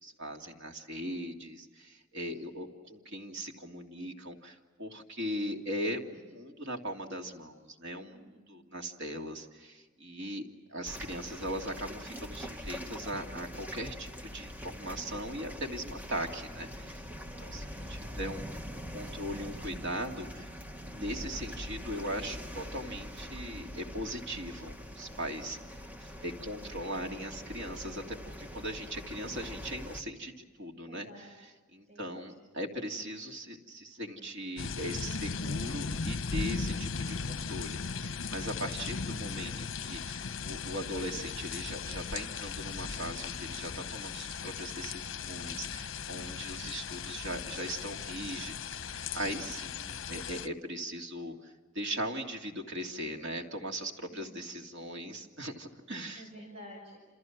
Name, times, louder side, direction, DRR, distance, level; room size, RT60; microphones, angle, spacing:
voice 1, 0.0-17.0 17.4-20.5 20.9-25.6 26.0-31.3 31.7-56.2, equal, 65° right, 2 dB, 2.8 m, -39 dB
voice 2, 2.2-2.7 8.1-8.7 17.1-18.1 25.4-26.0 30.9-31.3 31.8-32.3 38.4-38.9 54.1-54.7 56.2-57.1, equal, 35° right, 1 dB, 6.3 m, -53 dB
sound 1, 10.9-30.0, equal, 10° right, 1.2 m, -43 dB
sound 2, 34.6-50.5, left 5 dB, 75° left, 0.9 m, -37 dB
28.5 x 28.5 x 6.1 m, 1.4 s
head